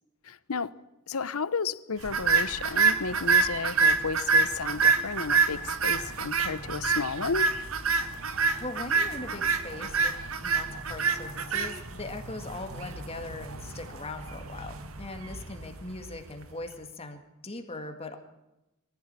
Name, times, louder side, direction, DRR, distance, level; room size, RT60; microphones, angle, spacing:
voice 1, 0.2-0.7 1.1-7.5, left 5 dB, 85° left, 0.9 m, -33 dB
sound 1, 2.0-16.4, right 4 dB, 75° right, 1.8 m, -27 dB
voice 2, 8.6-10.1 10.4-18.2, left 2 dB, 30° left, 2.0 m, -40 dB
24.0 x 15.5 x 8.9 m
head